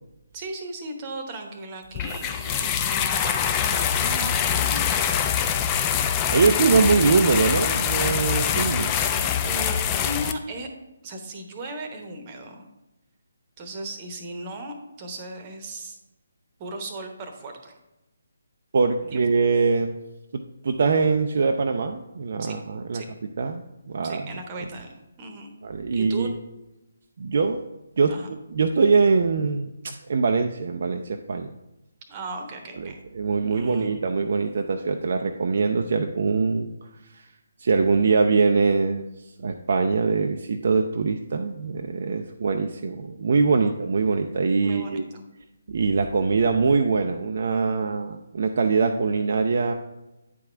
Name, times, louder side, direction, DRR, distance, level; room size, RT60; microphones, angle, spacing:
voice 1, 0.3-5.3 6.8-6.9 8.8-10.7 11.0-12.7 13.6-16.0 16.6-17.8 19.0-19.2 22.4-22.6 22.9-23.1 24.0-25.5 25.9-26.3 28.1-28.3 32.1-33.0 33.4-33.9 43.6-43.7 44.6-45.3, right 2 dB, 25° right, 4 dB, 0.9 m, -37 dB
sound 1, 1.9-10.3, left 8 dB, 20° left, 0.4 m, -24 dB
voice 2, 6.3-8.9 18.7-20.0 20.3-23.0 23.4-24.3 25.6-26.3 27.2-27.6 28.0-28.1 28.5-31.5 32.8-36.7 37.1-37.3 37.6-39.1 39.4-45.1 45.7-49.7, right 4 dB, 50° right, 4 dB, 0.4 m, -23 dB
9.2 x 4.8 x 3.4 m, 0.96 s
figure-of-eight pair, 145°, 0 cm